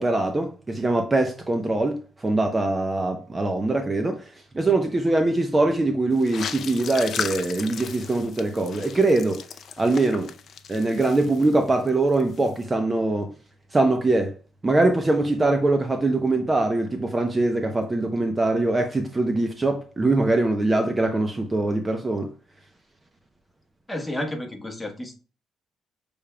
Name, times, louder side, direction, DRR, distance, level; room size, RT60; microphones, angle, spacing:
voice 1, 0.0-4.2 4.5-9.4 9.8-10.3 10.7-13.3 13.7-14.3 14.6-22.3, right 2 dB, 25° right, 0.7 m, -22 dB
sound 1, 6.2-11.9 12.1-12.5, left 7 dB, 60° left, 0.4 m, -36 dB
voice 2, 23.9-25.1, left 1 dB, 10° left, 1.2 m, -31 dB
6.4 x 3.5 x 2.2 m
cardioid pair, 90°, 0 cm